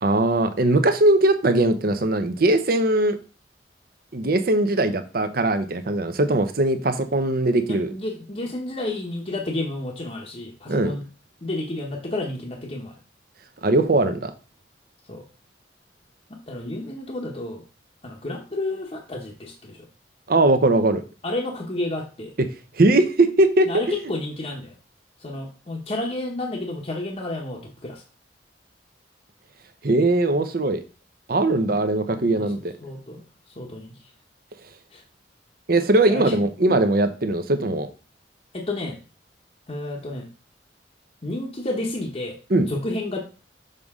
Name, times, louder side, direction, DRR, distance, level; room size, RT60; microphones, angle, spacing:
voice 1, 0.0-3.2 4.1-7.9 10.7-10.9 13.6-14.3 20.3-21.0 22.7-23.7 29.8-30.8 31.3-32.7 35.7-37.9 42.5-42.7, right 2 dB, 55° right, 9 dB, 0.8 m, -20 dB
voice 2, 7.9-11.0 11.4-12.9 15.1-15.2 16.5-17.6 18.0-19.9 21.2-22.3 23.6-24.8 25.2-28.0 31.7-31.8 32.3-32.5 32.8-33.2 33.6-34.0 34.9-35.0 36.1-36.3 36.7-36.8 38.5-39.0 39.7-40.3 41.2-42.4 42.7-43.2, left 2 dB, 35° left, -1 dB, 0.9 m, -31 dB
6.6 x 5.3 x 3.6 m, 0.34 s
head